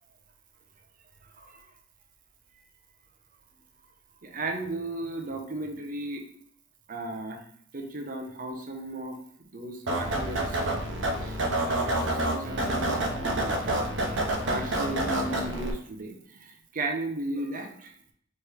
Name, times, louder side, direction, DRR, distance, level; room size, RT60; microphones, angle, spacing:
voice 1, 1.2-1.7 4.2-6.2 6.9-7.4 7.7-9.2 9.5-10.6 11.2-11.4 11.6-13.8 14.0-18.0, right 2 dB, 45° right, 4 dB, 0.7 m, -35 dB
sound 1, 9.9-15.7, right 1 dB, 70° right, 0.9 m, -28 dB
3.4 x 3.2 x 4.5 m, 0.64 s
head